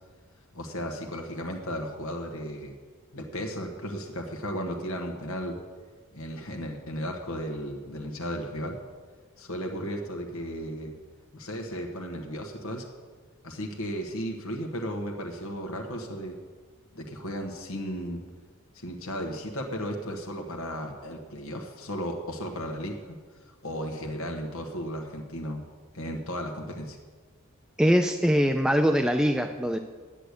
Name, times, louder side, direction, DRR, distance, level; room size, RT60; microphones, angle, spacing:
voice 1, 0.5-2.7 3.1-5.6 6.1-8.8 9.4-10.9 11.3-12.9 13.4-16.4 16.9-18.2 18.7-23.2 23.6-25.6 25.9-27.0, equal, 75° left, 2 dB, 1.4 m, -35 dB
voice 2, 27.8-29.8, equal, 5° right, 6 dB, 0.4 m, -22 dB
10.0 x 8.4 x 8.1 m, 1.5 s
head